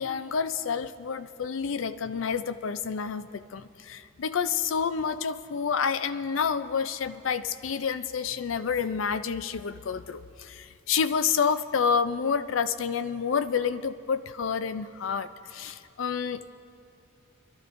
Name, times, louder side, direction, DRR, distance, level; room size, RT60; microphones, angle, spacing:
voice 1, 0.0-16.5, left 6 dB, 70° left, 12 dB, 0.5 m, -29 dB
26.0 x 12.0 x 2.6 m, 2.5 s
head